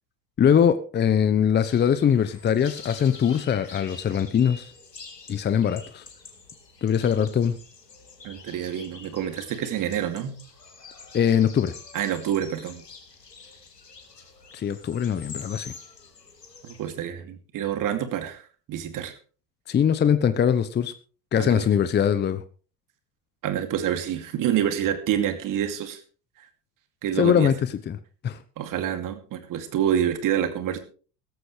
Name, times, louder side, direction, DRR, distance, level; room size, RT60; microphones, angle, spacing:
voice 1, 0.4-4.7 5.3-6.0 6.8-7.5 11.1-11.7 14.5-15.7 19.7-20.9 21.3-22.4 27.2-28.0 28.2-28.4, left 8 dB, 20° left, 12 dB, 0.9 m, -22 dB
sound 1, 1.6-16.9, left 4 dB, 90° left, 2.6 m, -46 dB
voice 2, 8.2-10.3 11.9-12.8 16.6-18.4 18.7-19.2 21.4-21.7 23.4-26.0 27.0-27.5 28.6-30.8, right 10 dB, 40° right, 8 dB, 2.6 m, -27 dB
16.5 x 14.0 x 3.3 m, 0.39 s
figure-of-eight pair, 75°, 47 cm